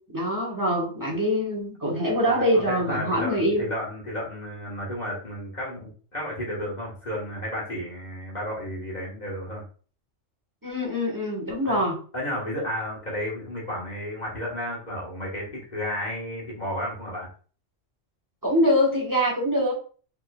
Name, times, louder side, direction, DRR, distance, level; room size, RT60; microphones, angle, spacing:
voice 1, 0.1-3.7 10.6-12.0 18.4-19.7, equal, 15° right, -3 dB, 1.3 m, -24 dB
voice 2, 2.2-9.6 11.6-11.8 12.1-17.3, equal, 35° left, -4 dB, 1.5 m, -32 dB
4.3 x 3.8 x 2.3 m, 0.40 s
omnidirectional pair, 1.3 m